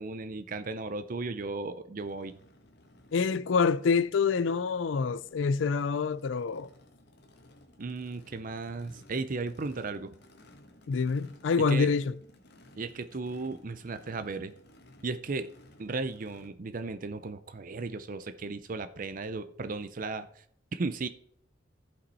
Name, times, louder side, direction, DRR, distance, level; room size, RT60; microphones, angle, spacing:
voice 1, 0.0-2.4 7.8-10.1 11.7-11.9 12.8-14.5 15.0-15.5 15.8-20.3 20.7-21.1, right 3 dB, 45° right, 0.5 m, -35 dB
Race car auto racing / Idling / Accelerating revving vroom, 2.0-16.5, left 1 dB, 60° left, 1.3 m, -58 dB
voice 2, 3.1-6.7 10.9-12.1, left 5 dB, 75° left, 0.4 m, -26 dB
14.5 x 5.3 x 4.2 m
head